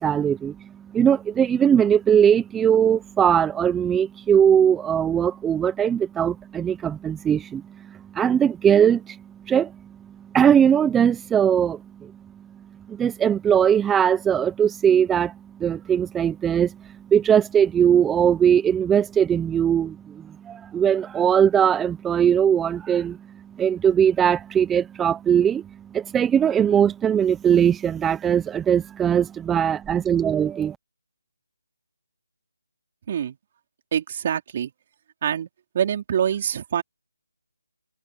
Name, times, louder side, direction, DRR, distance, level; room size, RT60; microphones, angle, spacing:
voice 1, 0.0-9.8 10.3-12.1 12.9-30.8, right 8 dB, 10° right, 0.8 m, -20 dB
voice 2, 33.1-33.4 33.9-34.7 35.2-35.5 35.7-36.8, right 9 dB, 35° right, 4.4 m, -25 dB
figure-of-eight pair, 160°, 0 cm